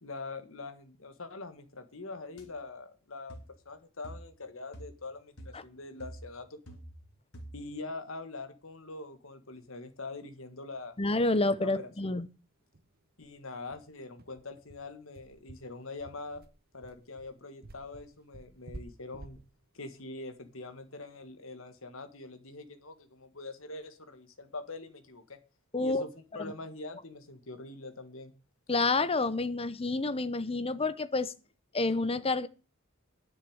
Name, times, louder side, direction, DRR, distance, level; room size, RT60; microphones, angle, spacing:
voice 1, 0.0-6.6 7.5-11.0 11.6-11.9 13.2-16.4 16.7-19.4 19.7-25.4 25.8-28.3, left 3 dB, 65° left, 1.9 m, -44 dB
sound 1, 2.4-2.5 3.3-3.6 4.0-4.4 4.7-5.1 5.4-5.7 6.0-7.1 7.3-7.7, right 1 dB, 85° left, 3.2 m, -47 dB
sound 2, 10.8-10.9 11.2-11.3 11.6-11.8 12.2-12.3 12.7-21.2, right 2 dB, 45° right, 1.0 m, -51 dB
voice 2, 11.0-12.3 25.7-26.0 28.7-31.3 31.7-32.5, left 3 dB, 25° left, 0.8 m, -29 dB
10.5 x 7.4 x 8.0 m
head